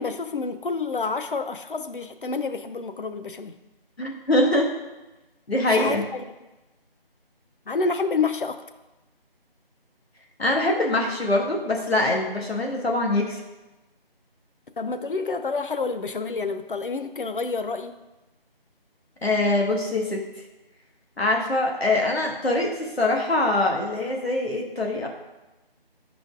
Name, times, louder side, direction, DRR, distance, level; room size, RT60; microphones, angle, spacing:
voice 1, 0.0-3.6 5.7-6.2 7.7-8.6 14.8-18.0, left 4 dB, 60° left, 9 dB, 0.5 m, -28 dB
voice 2, 4.0-4.7 5.5-6.0 10.4-13.4 19.2-20.2 21.2-25.1, left 2 dB, 85° left, 1 dB, 1.5 m, -23 dB
10.0 x 5.1 x 2.4 m, 1.1 s
figure-of-eight pair, 170°, 30 cm